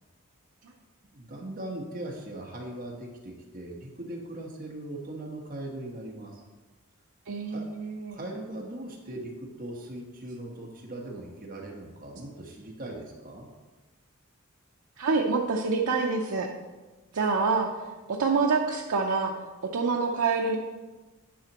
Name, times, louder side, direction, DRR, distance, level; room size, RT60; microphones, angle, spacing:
voice 1, 1.1-6.4 7.5-7.7 8.1-13.5 17.1-17.2, right 1 dB, 40° right, -1 dB, 1.3 m, -39 dB
voice 2, 7.3-8.2 15.0-16.5 17.1-17.7 18.1-19.3 19.7-20.6, right 4 dB, 75° right, 0 dB, 0.6 m, -26 dB
10.0 x 5.7 x 3.0 m, 1.2 s
head